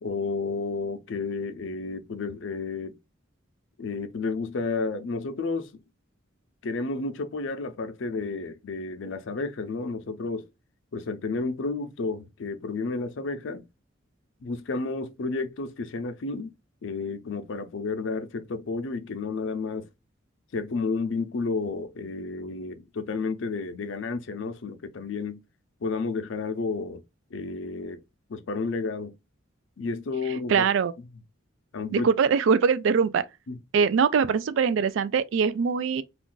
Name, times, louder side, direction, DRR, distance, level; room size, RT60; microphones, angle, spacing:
voice 1, 0.0-3.0 3.8-5.7 6.6-10.5 10.9-13.6 14.4-16.5 16.8-19.9 20.5-25.4 25.8-27.0 27.3-28.0 28.3-29.1 29.8-30.6 31.7-32.1 33.5-33.6, left 4 dB, 70° left, 0.5 m, -31 dB
voice 2, 30.5-30.9 31.9-33.3 33.7-36.0, right 6 dB, 70° right, 0.3 m, -22 dB
2.5 x 2.2 x 3.7 m
head